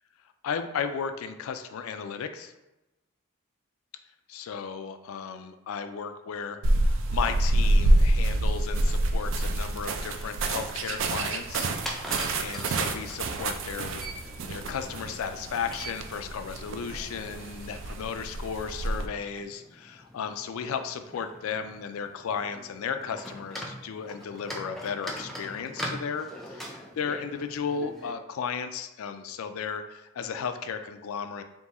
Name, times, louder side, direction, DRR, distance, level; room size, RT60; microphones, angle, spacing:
voice 1, 0.4-2.5 4.3-11.7 12.4-31.4, left 6 dB, 80° left, 9 dB, 0.4 m, -35 dB
sound 1, 6.6-19.1, right 1 dB, 60° right, 0.4 m, -27 dB
sound 2, 10.1-28.1, equal, ahead, 0.4 m, -43 dB
3.6 x 2.7 x 4.0 m, 0.98 s
head